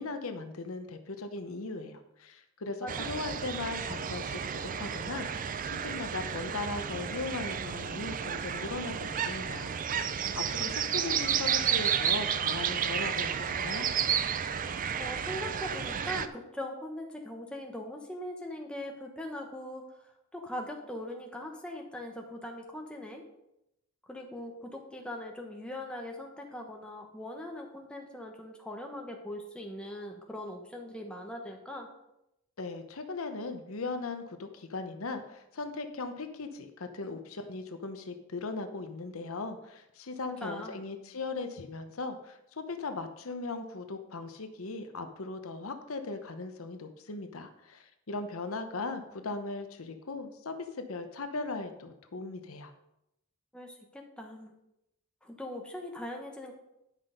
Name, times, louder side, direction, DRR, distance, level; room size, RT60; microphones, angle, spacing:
voice 1, 0.0-9.8 10.1-13.9 32.6-52.7, left 3 dB, 75° left, 7 dB, 0.9 m, -38 dB
sound 1, 2.9-16.3, right 8 dB, 40° right, 0.4 m, -32 dB
voice 2, 15.0-23.2 24.0-31.9 40.4-40.8 53.5-54.5 55.2-56.5, left 1 dB, 5° left, 1 dB, 1.3 m, -41 dB
10.0 x 5.8 x 5.2 m, 0.84 s
head